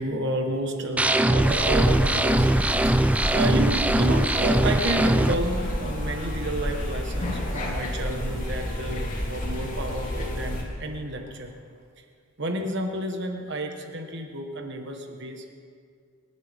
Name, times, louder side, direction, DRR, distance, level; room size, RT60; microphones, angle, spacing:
voice 1, 0.0-2.5 2.8-11.5 12.4-15.4, right 1 dB, 55° right, 4 dB, 1.5 m, -30 dB
sound 1, 1.0-5.3, right 1 dB, 5° right, 0.3 m, -21 dB
sound 2, 1.4-10.6, left 1 dB, 35° left, 3.0 m, -30 dB
sound 3, 2.1-11.8, equal, 85° right, 3.3 m, -46 dB
26.5 x 12.0 x 3.6 m, 2.1 s
head